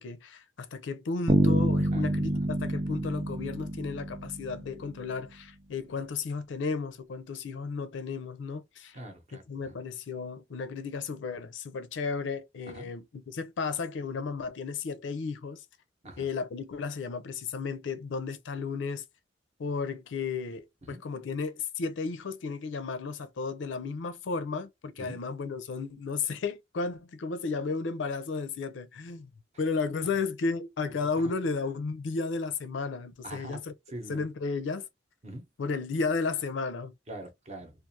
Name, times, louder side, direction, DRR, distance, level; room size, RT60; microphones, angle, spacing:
voice 1, 0.0-8.9 9.3-15.6 16.2-19.0 19.6-29.3 29.6-33.7 34.1-34.9 35.6-36.9, left 4 dB, 70° left, 0.4 m, -33 dB
Bass guitar, 1.3-5.1, right 1 dB, 20° right, 0.4 m, -27 dB
voice 2, 8.9-9.7 12.7-12.9 16.0-16.2 20.8-21.0 25.0-25.2 31.0-31.4 33.2-33.6 33.9-34.2 35.2-35.4 37.1-37.7, right 1 dB, 35° right, 0.8 m, -43 dB
2.4 x 2.4 x 2.7 m
head